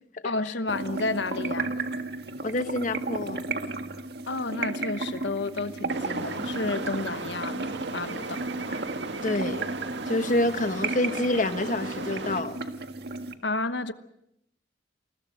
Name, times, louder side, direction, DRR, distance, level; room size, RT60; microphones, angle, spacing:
voice 1, 0.2-1.7 4.3-8.5 13.4-13.9, left 3 dB, 90° left, 1.1 m, -31 dB
sound 1, 0.7-13.3, right 3 dB, 65° right, 1.7 m, -34 dB
voice 2, 2.4-3.4 8.7-8.8 9.2-9.7 10.1-12.6, left 2 dB, 45° left, 1.1 m, -27 dB
sound 2, 5.9-12.4, right 3 dB, 85° right, 1.8 m, -36 dB
29.0 x 20.5 x 6.5 m
head